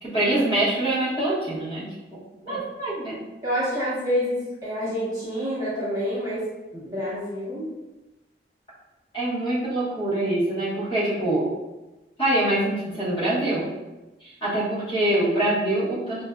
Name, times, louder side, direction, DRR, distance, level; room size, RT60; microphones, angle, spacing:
voice 1, 0.0-1.9 2.4-3.2 9.1-11.5 12.2-13.7 14.2-16.2, right 1 dB, 30° left, -9 dB, 1.1 m, -24 dB
voice 2, 3.4-6.5 6.7-7.7, equal, 20° right, -9 dB, 0.9 m, -28 dB
4.4 x 2.4 x 2.2 m, 1.1 s
head